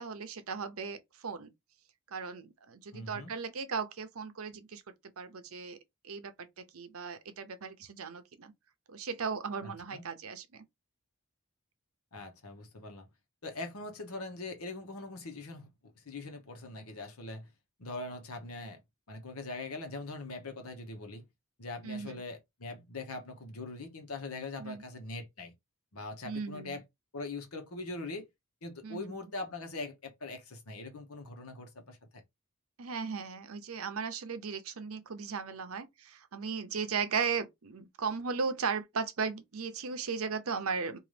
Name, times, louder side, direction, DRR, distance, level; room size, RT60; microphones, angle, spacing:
voice 1, 0.0-1.5 2.1-4.8 5.2-5.8 6.0-8.5 8.9-10.6 21.8-22.2 24.6-24.8 26.2-26.8 28.8-29.1 32.8-41.0, right 5 dB, 75° right, 0.7 m, -36 dB
voice 2, 2.9-3.3 9.6-10.0 12.1-13.1 13.4-15.7 16.0-17.5 17.8-18.8 19.1-21.2 21.6-25.5 25.9-26.8 27.1-28.3 28.6-32.2, left 2 dB, 80° left, 1.0 m, -42 dB
3.8 x 2.6 x 3.3 m
head